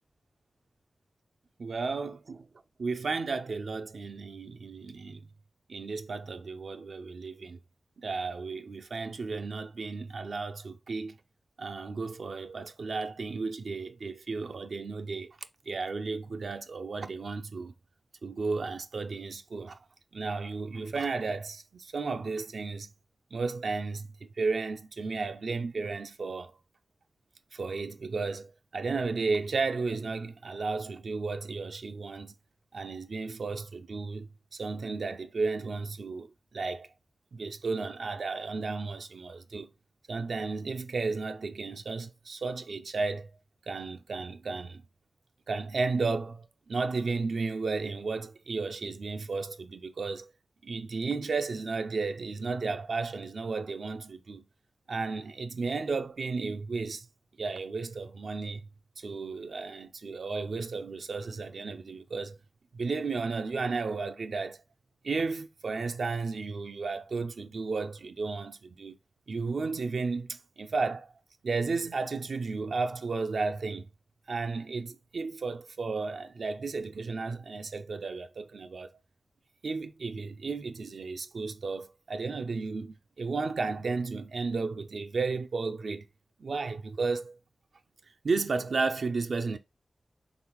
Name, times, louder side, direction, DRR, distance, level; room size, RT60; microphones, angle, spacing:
voice 1, 1.6-2.5 2.8-5.2 5.7-7.6 8.0-11.2 11.6-15.4 15.7-17.7 18.2-19.8 20.1-22.9 23.3-24.1 24.4-26.5 27.5-32.3 32.7-36.9 37.3-39.7 40.1-43.3 43.7-44.8 45.5-50.3 50.6-54.4 54.9-57.1 57.4-58.6 59.0-62.4 62.7-64.6 65.0-69.0 69.3-71.1 71.4-73.9 74.3-78.9 79.6-86.1 86.4-87.4 88.2-89.6, right 4 dB, 75° right, 0.4 m, -33 dB
4.0 x 3.3 x 3.0 m
cardioid pair, 60°, 0 cm